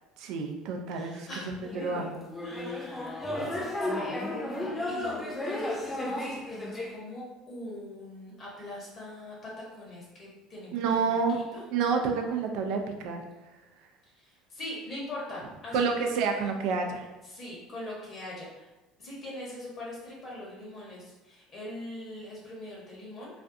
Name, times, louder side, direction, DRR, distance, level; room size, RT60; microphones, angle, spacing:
voice 1, 0.2-2.3 10.7-11.4 11.7-13.2 15.7-17.1, right 5 dB, 65° right, 4 dB, 0.3 m, -29 dB
voice 2, 0.9-1.5 2.4-4.6 4.9-11.1 11.3-11.6 14.0-16.1 17.2-18.7 19.0-23.3, left 1 dB, 40° left, -5 dB, 0.9 m, -42 dB
sound 1, 1.6-6.9, left 1 dB, 15° left, 0.7 m, -33 dB
2.4 x 2.3 x 2.5 m, 1.1 s
hypercardioid pair, 70°, 0 cm